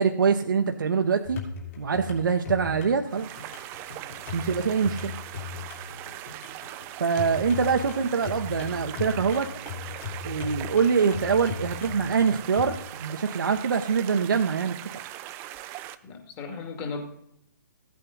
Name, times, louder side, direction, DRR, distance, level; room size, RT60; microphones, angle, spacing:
voice 1, 0.0-1.4 1.8-3.3 4.3-5.1 7.0-9.5 10.2-15.0, right 6 dB, 70° right, 4 dB, 0.9 m, -24 dB
sound 1, 1.2-12.7, left 6 dB, 45° left, 3.2 m, -38 dB
sound 2, 3.1-16.0, right 14 dB, 20° right, 0.5 m, -40 dB
voice 2, 16.0-17.0, left 4 dB, 30° left, 4 dB, 2.3 m, -36 dB
15.0 x 8.5 x 4.0 m, 0.73 s
hypercardioid pair, 135°, 11 cm